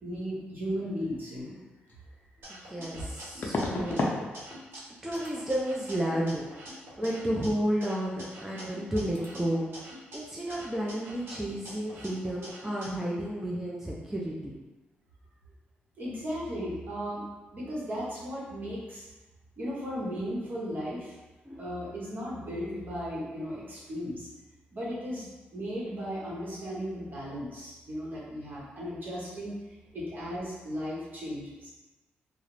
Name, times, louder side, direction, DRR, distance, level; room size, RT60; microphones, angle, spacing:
voice 1, 0.0-1.6 16.0-17.2 17.5-19.0 19.6-21.1 21.6-24.3 24.7-29.5 29.9-31.7, equal, 50° right, -6 dB, 1.0 m, -36 dB
sound 1, 1.9-2.0 3.4-4.2 4.5-4.9 5.1-5.3 8.3-8.4 8.6-8.9 9.1-9.3, left 2 dB, 50° left, 0.4 m, -32 dB
sound 2, 2.4-4.8 5.1-7.5 7.8-10.2 10.5-12.9, equal, 70° right, 0.9 m, -46 dB
voice 2, 2.5-4.3 5.0-14.6 21.4-21.6 21.9-22.0, equal, 10° right, -5 dB, 0.4 m, -32 dB
2.3 x 2.0 x 3.1 m, 1.1 s
cardioid pair, 90°, 4 cm